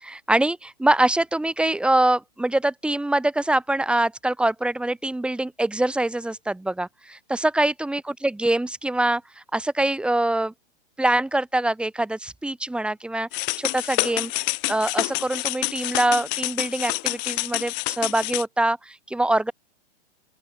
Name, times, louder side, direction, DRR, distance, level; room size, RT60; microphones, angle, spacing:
voice 1, 0.0-9.2 9.5-10.5 11.0-14.3 14.7-19.5, right 1 dB, 5° right, 4.6 m, -24 dB
sound 1, 13.3-18.4, left 40 dB or more, 40° left, 7.9 m, -27 dB
open air
hypercardioid pair, 150°, 32 cm